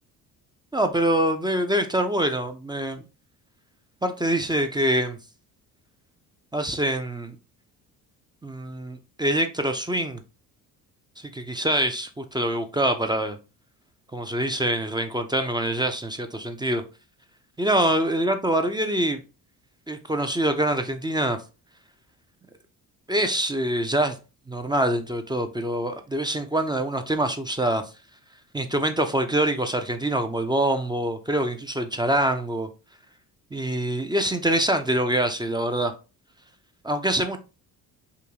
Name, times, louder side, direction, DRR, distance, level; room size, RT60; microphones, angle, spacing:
voice 1, 0.7-3.0 4.0-5.2 6.5-7.4 8.4-10.2 11.2-13.4 14.1-16.8 17.6-19.2 19.9-21.4 23.1-24.2 24.5-27.8 28.5-32.7 33.5-35.9 36.8-37.4, right 1 dB, 10° right, 0.5 m, -25 dB
3.8 x 2.7 x 2.9 m
hypercardioid pair, 55°, 45 cm